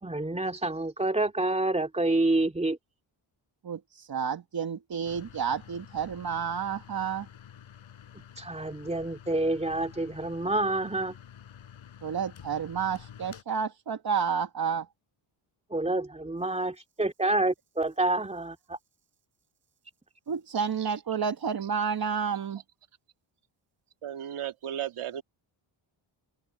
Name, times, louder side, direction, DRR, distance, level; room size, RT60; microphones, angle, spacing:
voice 1, 0.0-2.8 8.4-11.1 15.7-18.8, right 2 dB, 15° right, 2.7 m, -28 dB
voice 2, 3.6-7.3 12.0-14.9 20.3-22.6, right 6 dB, 45° right, 1.4 m, -30 dB
sound 1, 5.0-13.4, left 9 dB, 75° left, 5.4 m, -50 dB
voice 3, 24.0-25.2, right 11 dB, 85° right, 2.3 m, -34 dB
cardioid pair, 85°, 49 cm